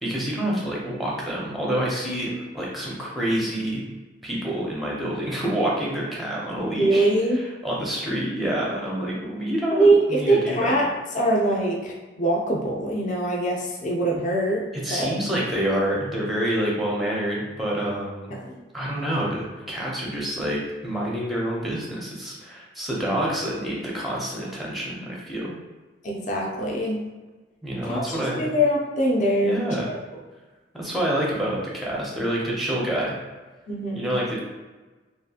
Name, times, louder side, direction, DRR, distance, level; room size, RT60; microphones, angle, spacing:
voice 1, 0.0-3.8 4.2-10.8 14.8-18.4 18.7-25.5 27.6-28.5 29.4-29.9 30.7-33.2 33.9-34.4, right 1 dB, ahead, -4 dB, 0.6 m, -27 dB
voice 2, 6.8-7.4 9.7-10.8 11.1-11.9 12.2-14.6 14.9-15.1 18.5-18.6 26.0-27.0 27.8-29.6 29.9-30.0 33.7-34.1, right 1 dB, 40° left, -2 dB, 0.5 m, -22 dB
2.7 x 2.4 x 2.7 m, 1.2 s
head